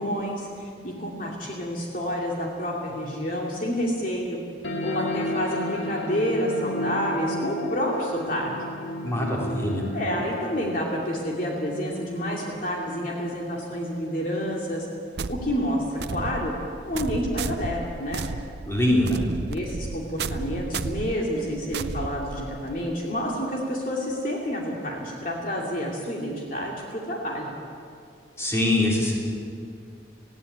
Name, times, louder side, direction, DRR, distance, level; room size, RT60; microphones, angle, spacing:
voice 1, 0.0-4.4 4.8-8.5 9.9-14.9 15.3-16.5 16.8-18.3 19.5-27.5, equal, 45° left, -2 dB, 2.7 m, -29 dB
sound 1, 4.6-15.6, left 1 dB, 80° left, 2.4 m, -34 dB
voice 2, 9.0-9.8 18.7-19.2 28.4-29.1, left 1 dB, 15° left, -3 dB, 3.8 m, -23 dB
sound 2, 15.2-22.8, right 4 dB, 60° right, 0.6 m, -33 dB
19.0 x 16.0 x 8.7 m, 2.3 s
head